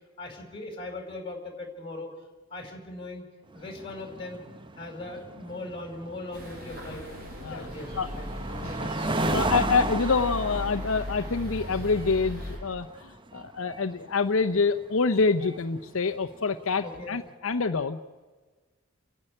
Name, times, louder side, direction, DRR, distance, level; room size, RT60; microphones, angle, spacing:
voice 1, 0.2-2.1 2.5-3.2 3.5-4.4 4.8-7.1 7.3-9.1 16.8-17.2, left 2 dB, 25° left, 3 dB, 4.9 m, -39 dB
sound 1, 3.5-17.0, right 2 dB, 20° right, 0.7 m, -36 dB
sound 2, 6.3-12.6, left 1 dB, 45° right, 6.0 m, -37 dB
voice 2, 8.6-18.0, left 4 dB, 75° left, 7 dB, 0.7 m, -27 dB
30.0 x 11.0 x 10.0 m, 1.4 s
head